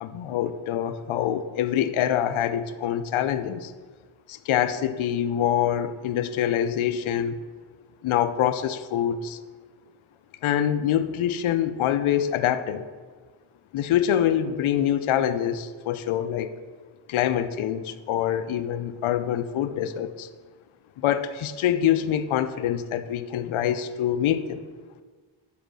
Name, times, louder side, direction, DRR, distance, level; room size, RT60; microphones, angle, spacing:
voice 1, 0.0-3.7 4.3-7.4 8.0-9.4 10.4-12.9 13.7-16.5 17.1-20.3 21.0-24.6, left 10 dB, 75° left, 11 dB, 0.5 m, -25 dB
5.1 x 4.9 x 6.2 m, 1.5 s
wide cardioid pair, 95°, 49 cm